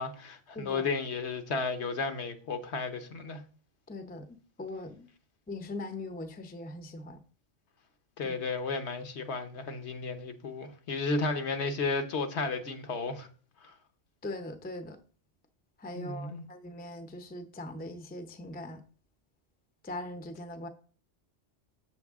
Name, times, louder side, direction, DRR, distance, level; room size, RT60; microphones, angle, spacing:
voice 1, 0.0-3.4 8.2-13.3 13.6-13.7 15.9-16.4, left 4 dB, 65° left, 1.1 m, -33 dB
voice 2, 0.5-0.9 3.9-4.3 4.6-5.1 5.5-7.2 8.2-8.4 14.2-15.0 15.8-18.8 19.8-20.7, left 2 dB, 10° left, 0.5 m, -40 dB
7.9 x 6.9 x 3.6 m
omnidirectional pair, 1.2 m